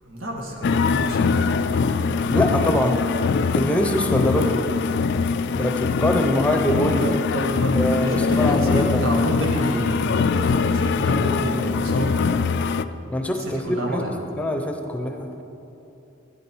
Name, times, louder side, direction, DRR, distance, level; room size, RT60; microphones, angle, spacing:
voice 1, 0.0-1.5 4.3-4.5 7.0-12.1 13.6-14.1, equal, 90° right, 0 dB, 1.9 m, -28 dB
sound 1, 0.6-12.8, left 5 dB, 60° left, 0.4 m, -22 dB
voice 2, 2.3-3.0 3.5-4.6 5.5-7.1 7.7-9.1 13.1-14.0 14.4-15.3, left 1 dB, 5° left, 4 dB, 0.7 m, -23 dB
13.0 x 10.5 x 4.6 m, 2.9 s
head